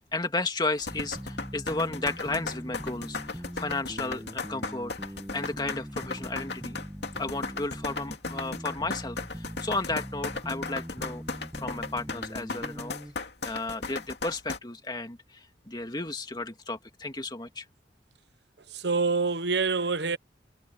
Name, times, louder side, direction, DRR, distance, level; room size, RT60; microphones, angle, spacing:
voice 1, 0.1-4.9 5.3-6.8 7.2-11.2 11.6-12.9 13.4-17.7, left 2 dB, 25° left, 2.3 m, -33 dB
sound 1, 0.8-14.6, left 3 dB, 75° left, 2.6 m, -36 dB
sound 2, 0.9-13.1, equal, 10° right, 1.9 m, -42 dB
voice 2, 18.7-20.2, right 4 dB, 75° right, 1.2 m, -26 dB
head